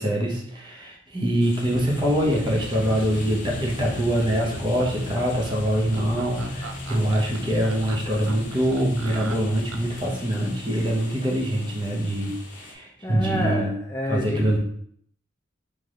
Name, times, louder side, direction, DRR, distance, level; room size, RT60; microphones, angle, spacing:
voice 1, 0.0-13.7 14.1-14.6, equal, 25° right, -1 dB, 0.9 m, -24 dB
sound 1, 1.4-12.7, left 3 dB, 40° left, 0.8 m, -43 dB
sound 2, 1.7-10.1, left 1 dB, 75° left, 0.6 m, -37 dB
Laughter, 2.2-10.0, right 5 dB, 75° right, 0.4 m, -40 dB
voice 2, 13.0-14.6, equal, 15° left, -3 dB, 0.4 m, -29 dB
3.5 x 3.2 x 3.6 m, 0.64 s
head